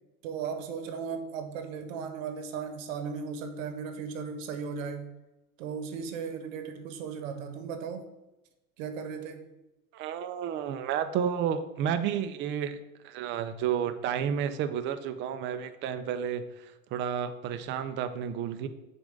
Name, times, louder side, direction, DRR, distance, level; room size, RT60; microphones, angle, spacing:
voice 1, 0.2-5.1 5.6-8.1 8.8-9.5, right 6 dB, 65° right, 7 dB, 1.0 m, -36 dB
voice 2, 9.9-18.7, right 8 dB, 30° right, 10 dB, 0.4 m, -31 dB
7.3 x 2.5 x 5.1 m, 0.99 s
hypercardioid pair, 110°, 43 cm